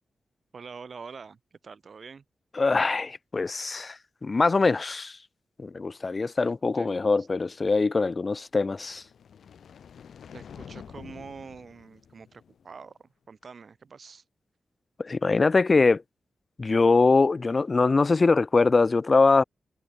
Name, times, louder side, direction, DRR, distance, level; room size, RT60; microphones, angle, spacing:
voice 1, 0.5-2.2 6.4-6.9 7.2-7.3 10.3-14.2, right 5 dB, 60° right, 4.2 m, -45 dB
voice 2, 2.6-5.2 5.6-9.0 15.0-16.0 16.6-19.4, left 3 dB, 40° left, 0.4 m, -23 dB
sound 1, 8.6-12.9, left 7 dB, 85° left, 1.9 m, -48 dB
cardioid pair, 80°, 0 cm